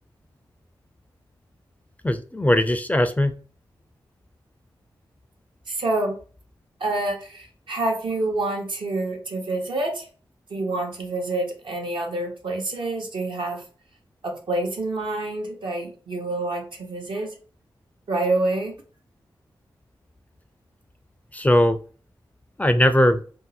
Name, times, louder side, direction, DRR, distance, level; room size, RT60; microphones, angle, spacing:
voice 1, 2.0-3.3 21.3-21.8 22.6-23.2, left 1 dB, 15° left, 9 dB, 0.4 m, -19 dB
voice 2, 5.7-6.2 6.8-10.1 10.5-13.6 14.2-17.3 18.1-18.8, right 2 dB, 65° right, 1 dB, 0.9 m, -27 dB
2.6 x 2.0 x 4.0 m, 0.39 s
cardioid pair, 45°, 9 cm